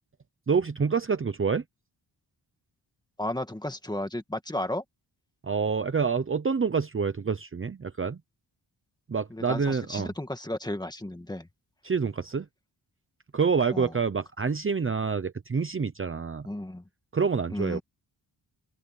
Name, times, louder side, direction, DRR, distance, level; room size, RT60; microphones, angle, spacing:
voice 1, 0.5-1.6 5.4-8.2 9.1-10.1 11.8-12.5 13.3-16.5 17.1-17.8, right 5 dB, 30° right, 0.8 m, -27 dB
voice 2, 3.2-4.8 9.3-11.5 13.7-13.9 16.4-16.8 17.5-17.8, left 1 dB, 10° left, 1.8 m, -33 dB
open air
wide cardioid pair, 135°, 43 cm